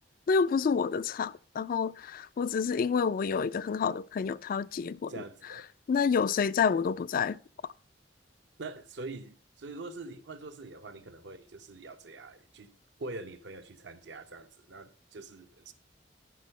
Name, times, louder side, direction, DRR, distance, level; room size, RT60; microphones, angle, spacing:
voice 1, 0.3-5.2 5.9-7.4, left 6 dB, 50° left, 0.3 m, -28 dB
voice 2, 5.1-5.7 8.6-12.7 13.0-15.7, right 3 dB, 70° right, 0.8 m, -44 dB
9.0 x 6.2 x 5.3 m
head